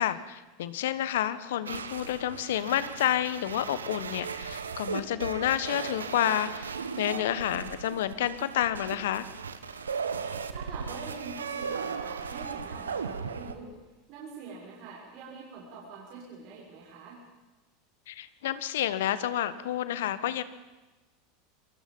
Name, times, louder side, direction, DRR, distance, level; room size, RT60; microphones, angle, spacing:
voice 1, 0.0-9.2 18.1-20.4, left 11 dB, 70° left, 14 dB, 1.3 m, -29 dB
sound 1, 1.7-13.5, right 6 dB, 85° right, 1.4 m, -37 dB
voice 2, 10.5-13.7 14.1-17.2, right 4 dB, 55° right, -4 dB, 6.7 m, -44 dB
27.0 x 23.5 x 5.5 m, 1.1 s
hypercardioid pair, 85°, 0 cm